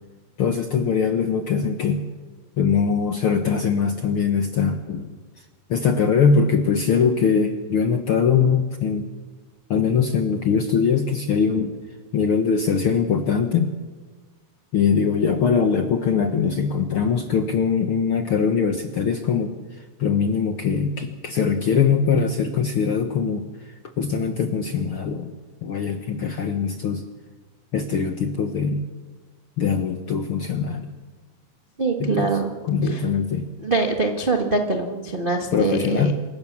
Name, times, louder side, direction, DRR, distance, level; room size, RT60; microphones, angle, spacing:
voice 1, 0.4-2.0 2.6-5.1 5.7-9.1 9.7-11.7 12.1-13.7 14.7-19.5 20.0-23.5 24.0-25.3 25.6-27.0 27.7-28.8 29.6-30.9 32.0-32.3 32.6-33.5 35.5-36.1, left 6 dB, 65° left, 6 dB, 1.3 m, -22 dB
voice 2, 31.8-32.5 32.8-33.0 33.6-36.1, right 3 dB, 60° right, 3 dB, 0.5 m, -23 dB
27.0 x 15.5 x 7.3 m, 1.3 s
omnidirectional pair, 3.9 m